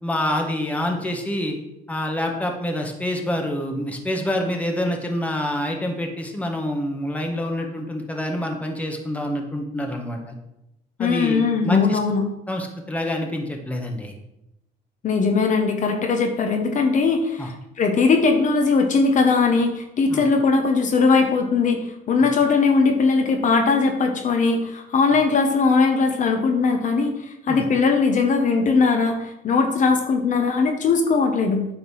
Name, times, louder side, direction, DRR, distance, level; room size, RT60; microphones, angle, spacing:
voice 1, 0.0-1.6 1.9-10.3 11.0-12.0 12.5-14.1 17.4-17.5 20.1-20.2 27.5-27.6, left 1 dB, 10° left, 2 dB, 1.5 m, -27 dB
voice 2, 11.0-12.2 15.0-31.7, left 4 dB, 50° left, 3 dB, 1.1 m, -20 dB
9.2 x 3.9 x 6.3 m, 0.87 s
cardioid pair, 110°, 17 cm